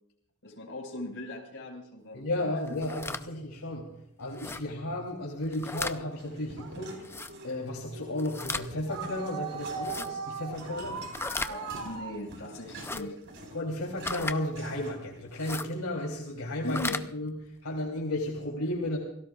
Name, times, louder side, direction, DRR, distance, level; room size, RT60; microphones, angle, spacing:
voice 1, 0.4-2.3 2.7-2.8 11.4-13.2 16.6-17.0, left 1 dB, 60° left, 1 dB, 5.2 m, -39 dB
voice 2, 2.1-3.9 4.2-6.9 7.4-11.0 12.9-13.1 13.5-19.0, left 1 dB, 75° left, -2 dB, 3.2 m, -33 dB
sound 1, 2.7-3.2 4.3-4.6 5.4-6.0 7.0-7.3 8.2-8.7 9.7-10.1 11.1-11.5 12.7-13.0 14.0-14.4 15.3-15.7 16.6-17.0, left 3 dB, 10° left, 0.6 m, -35 dB
sound 2, 6.1-7.8 8.2-15.2, right 2 dB, 55° right, 5.0 m, -48 dB
sound 3, 6.5-12.2, right 5 dB, 80° right, 2.7 m, -40 dB
28.0 x 18.5 x 2.4 m, 0.73 s
head